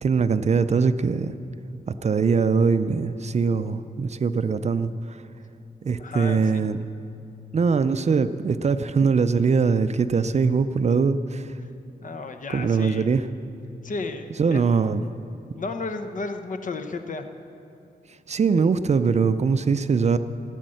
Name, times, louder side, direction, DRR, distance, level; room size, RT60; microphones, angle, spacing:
voice 1, 0.0-1.4 2.0-5.2 5.8-6.8 7.5-11.5 12.5-13.3 14.4-15.0 18.3-20.2, right 5 dB, 45° right, 12 dB, 0.5 m, -22 dB
voice 2, 6.0-6.7 12.0-13.1 13.8-14.6 15.6-17.3, left 3 dB, 50° left, 8 dB, 0.9 m, -33 dB
16.5 x 9.2 x 7.7 m, 2.6 s
wide cardioid pair, 130°, 16 cm